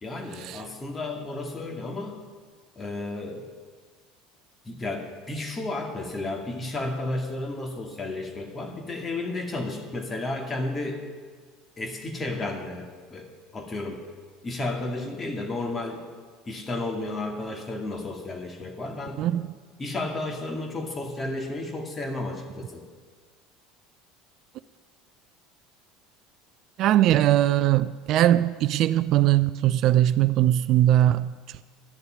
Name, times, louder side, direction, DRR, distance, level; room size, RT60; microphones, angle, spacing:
voice 1, 0.0-2.2 2.8-3.4 4.6-11.0 11.8-14.0 14.4-16.0 16.5-19.3 19.8-22.8, left 2 dB, 25° left, 2.3 m, -32 dB
voice 2, 26.8-31.3, right 13 dB, 55° right, 0.4 m, -20 dB
11.5 x 6.8 x 9.6 m
hypercardioid pair, 70°, 0 cm